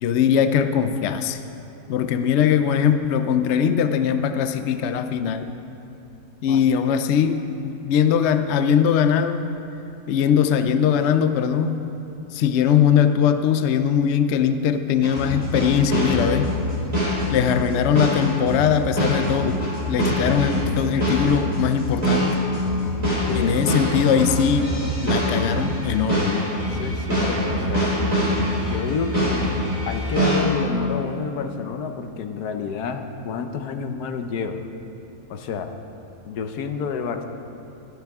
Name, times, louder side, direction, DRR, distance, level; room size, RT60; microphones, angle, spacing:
voice 1, 0.0-1.4 1.9-5.6 6.4-9.4 10.1-11.9 12.3-16.5 17.3-19.6 19.9-22.4 23.3-24.7 25.0-26.5, left 8 dB, 65° left, 9 dB, 0.7 m, -21 dB
sound 1, 15.0-30.4, equal, 25° right, 3.7 m, -24 dB
voice 2, 26.6-27.9 28.7-29.6 29.9-34.6 35.3-35.7 36.2-37.3, left 6 dB, 85° left, 7 dB, 1.3 m, -29 dB
23.0 x 8.3 x 3.6 m, 2.8 s
omnidirectional pair, 1.6 m